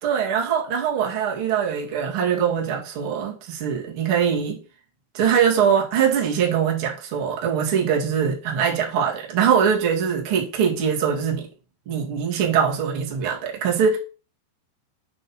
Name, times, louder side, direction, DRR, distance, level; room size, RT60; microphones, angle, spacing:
voice 1, 0.0-4.6 5.1-11.5 11.9-14.0, right 7 dB, 40° right, 2.0 m, -22 dB
8.9 x 5.3 x 4.4 m
omnidirectional pair, 5.6 m